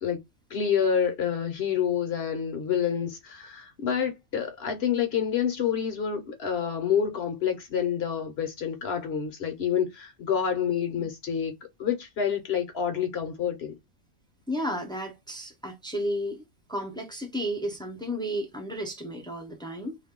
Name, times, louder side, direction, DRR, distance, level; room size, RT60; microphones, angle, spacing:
voice 1, 0.5-11.5 11.8-13.7, left 8 dB, 55° left, 0.8 m, -28 dB
voice 2, 14.5-16.4 16.7-20.0, equal, 5° left, 0.4 m, -32 dB
2.5 x 2.2 x 3.5 m
omnidirectional pair, 1.4 m